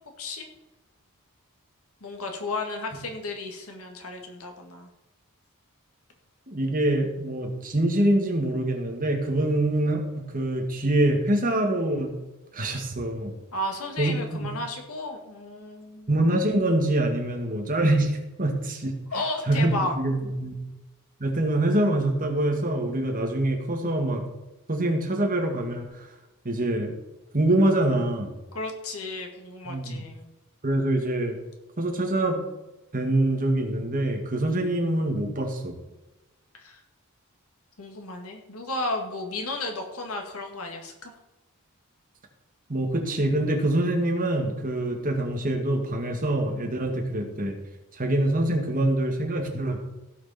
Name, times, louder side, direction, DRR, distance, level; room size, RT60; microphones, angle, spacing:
voice 1, 2.0-4.9 13.5-16.1 19.1-19.9 28.5-30.3 36.5-36.8 37.8-41.1, left 2 dB, 75° left, 3 dB, 2.1 m, -33 dB
voice 2, 6.5-12.1 12.5-13.3 14.0-14.5 16.1-18.9 19.5-20.5 21.2-24.2 24.7-25.9 26.5-26.9 27.3-28.3 29.7-30.0 30.6-31.4 31.8-32.4 32.9-35.7 42.7-47.6 48.0-49.8, right 1 dB, 40° right, 2 dB, 2.0 m, -25 dB
16.5 x 6.5 x 4.4 m, 1.0 s
head